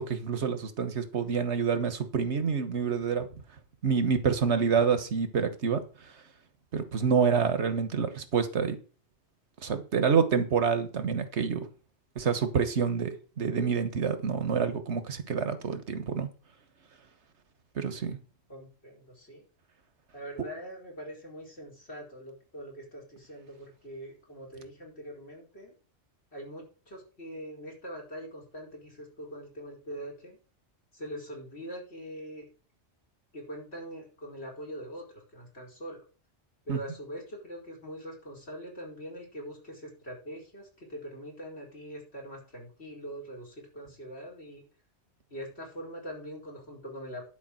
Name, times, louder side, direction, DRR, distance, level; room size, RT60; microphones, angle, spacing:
voice 1, 0.0-3.3 3.8-5.8 6.7-8.8 9.6-11.7 12.2-16.3 17.8-18.2 36.7-36.8, right 6 dB, 85° right, 9 dB, 1.6 m, -27 dB
voice 2, 18.5-19.4 20.1-25.7 26.3-30.4 30.9-32.4 33.3-35.0 35.3-36.0 36.6-44.6 45.3-47.3, equal, 70° left, 0 dB, 4.8 m, -43 dB
11.5 x 5.0 x 7.6 m, 0.37 s
omnidirectional pair, 1.1 m